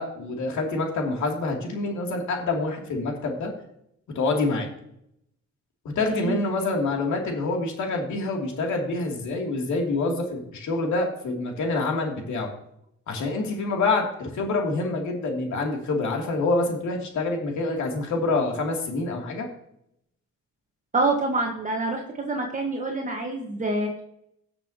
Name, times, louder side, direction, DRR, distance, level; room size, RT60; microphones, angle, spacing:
voice 1, 0.0-3.5 4.1-4.7 5.9-12.5 13.1-19.5, left 3 dB, 70° left, 1 dB, 2.8 m, -26 dB
voice 2, 6.1-6.4 20.9-24.0, right 2 dB, 25° right, 0 dB, 1.5 m, -26 dB
18.0 x 6.8 x 2.9 m, 0.76 s
cardioid pair, 90°, 30 cm